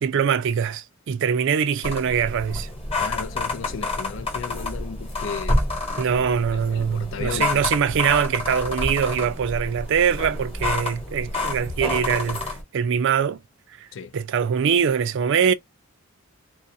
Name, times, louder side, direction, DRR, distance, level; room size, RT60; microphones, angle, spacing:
voice 1, 0.0-2.7 6.0-13.4 13.8-13.9 14.1-15.5, right 7 dB, 60° right, 0.4 m, -23 dB
sound 1, 1.8-12.6, left 2 dB, 30° left, 1.1 m, -28 dB
voice 2, 3.0-5.6 6.1-6.2 6.5-7.6 13.9-14.1, left 6 dB, 65° left, 0.4 m, -35 dB
2.3 x 2.0 x 2.6 m
head